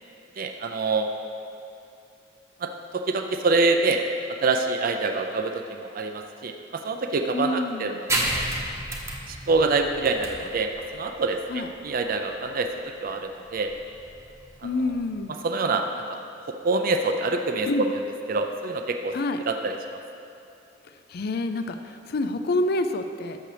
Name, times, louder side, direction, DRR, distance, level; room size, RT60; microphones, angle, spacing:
voice 1, 0.4-1.1 2.6-4.0 4.4-8.4 9.3-12.7 13.0-13.7 15.4-15.8 16.1-16.2 16.6-17.7 18.3-19.1 19.5-19.8, right 3 dB, 50° right, 5 dB, 0.5 m, -26 dB
voice 2, 7.3-8.0 11.5-11.7 14.6-15.3 17.7-17.9 19.1-19.4 21.1-23.4, left 2 dB, 55° left, 8 dB, 0.5 m, -27 dB
sound 1, 8.1-15.2, right 1 dB, 15° right, 0.9 m, -32 dB
12.0 x 6.8 x 3.3 m, 2.6 s
head